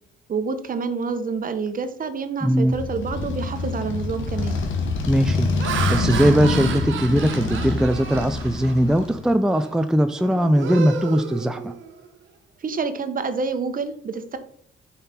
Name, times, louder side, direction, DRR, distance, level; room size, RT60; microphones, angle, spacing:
voice 1, 0.3-4.6 12.6-14.4, right 5 dB, 45° right, 9 dB, 1.2 m, -28 dB
voice 2, 2.4-2.8 5.1-11.7, equal, 5° right, 8 dB, 0.5 m, -20 dB
Motorcycle, 2.6-9.3, left 3 dB, 75° left, 1.7 m, -26 dB
Laughter, 3.5-3.8 4.3-4.6 5.3-9.1 9.5-9.8 10.1-12.1, right 7 dB, 75° right, 1.4 m, -32 dB
8.9 x 5.8 x 4.4 m, 0.67 s
cardioid pair, 90°, 20 cm